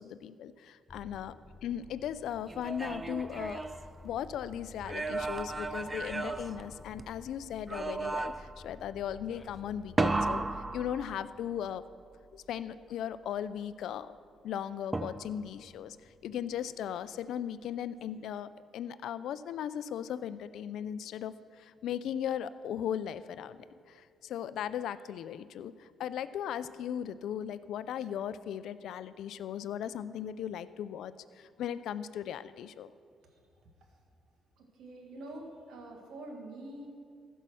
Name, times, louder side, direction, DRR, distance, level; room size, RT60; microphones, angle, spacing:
voice 1, 0.0-1.3 1.6-3.6 4.0-10.4 10.7-11.8 12.3-14.1 14.4-16.0 16.2-32.9, left 9 dB, 80° left, 14 dB, 0.4 m, -37 dB
sound 1, 0.9-10.2, left 2 dB, 30° left, 0.8 m, -52 dB
sound 2, 2.5-4.4 4.8-7.2 7.7-8.6 10.0-11.6 14.9-15.6, right 2 dB, 20° right, 0.5 m, -34 dB
voice 2, 33.2-33.6 34.6-36.9, right 1 dB, 80° right, 1 dB, 1.8 m, -46 dB
15.0 x 5.5 x 6.3 m, 2.2 s
cardioid pair, 90°, 0 cm